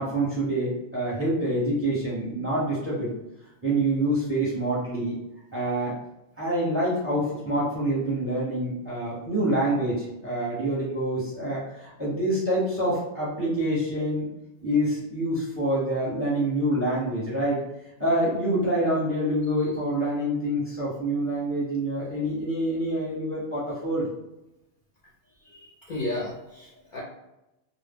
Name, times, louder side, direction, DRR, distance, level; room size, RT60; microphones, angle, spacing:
voice 1, 0.0-3.1 3.6-5.2 5.5-6.0 6.4-14.3 14.6-17.6 18.0-24.1, right 1 dB, 15° right, -6 dB, 0.7 m, -26 dB
voice 2, 25.4-27.0, left 1 dB, 55° left, -5 dB, 0.6 m, -34 dB
2.1 x 2.0 x 3.5 m, 0.92 s
omnidirectional pair, 1.2 m